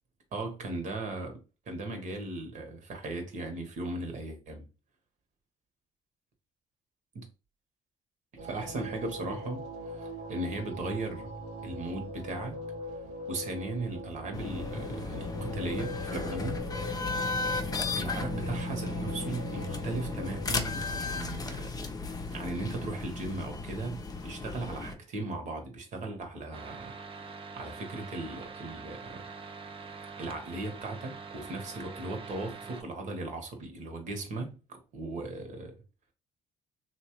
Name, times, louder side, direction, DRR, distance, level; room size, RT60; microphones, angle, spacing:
voice 1, 0.3-1.4 1.7-4.6 7.1-7.3 8.4-9.6 9.9-11.3 11.6-12.6 12.9-16.6 16.8-21.8 22.3-27.3 27.6-29.3 30.2-35.7, right 2 dB, 60° right, 1.1 m, -37 dB
sound 1, 8.4-20.6, equal, 85° right, 0.9 m, -42 dB
sound 2, 14.3-24.9, left 3 dB, 25° left, 0.6 m, -35 dB
sound 3, 26.5-32.8, right 4 dB, 40° right, 0.6 m, -44 dB
3.0 x 2.2 x 3.0 m
supercardioid pair, 70°, 14 cm